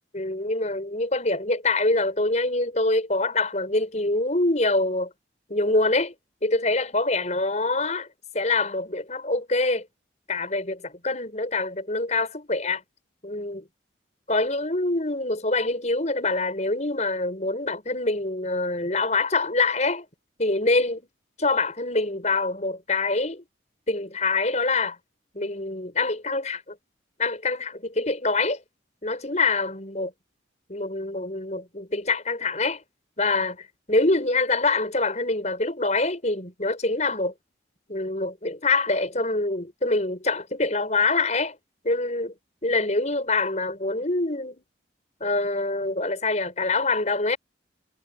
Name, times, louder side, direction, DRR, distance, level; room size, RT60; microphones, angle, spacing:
voice 1, 0.1-5.1 5.5-6.1 6.4-8.1 8.3-9.9 10.3-12.8 13.2-13.6 14.3-20.0 20.4-21.1 21.4-23.4 23.9-25.0 25.3-26.7 27.2-28.6 29.0-30.1 30.7-32.8 33.2-37.3 37.9-41.6 41.8-42.3 42.6-44.6 45.2-47.4, left 3 dB, 40° left, 6.7 m, -25 dB
head